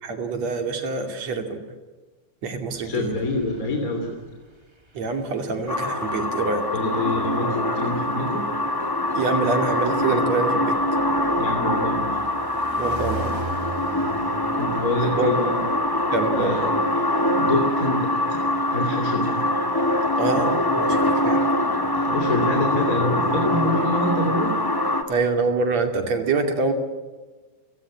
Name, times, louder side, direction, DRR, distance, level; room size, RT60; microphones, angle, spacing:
voice 1, 0.0-1.6 2.4-3.2 4.9-6.7 9.1-10.8 12.8-13.4 15.2-15.4 16.1-16.6 20.2-21.4 25.1-26.7, right 3 dB, 60° right, 5 dB, 3.8 m, -25 dB
sound 1, 2.7-4.6 4.9-6.2 7.2-7.4 9.5-16.7, right 2 dB, 25° right, 0.5 m, -38 dB
voice 2, 2.8-4.2 6.7-8.5 11.4-12.1 14.6-15.6 16.4-16.8 17.3-18.4 18.7-19.4 21.9-24.6, left 2 dB, 25° left, 2 dB, 3.2 m, -26 dB
sound 2, 5.7-25.0, left 1 dB, 10° left, 1.3 m, -24 dB
29.5 x 18.0 x 8.5 m, 1.3 s
omnidirectional pair, 3.6 m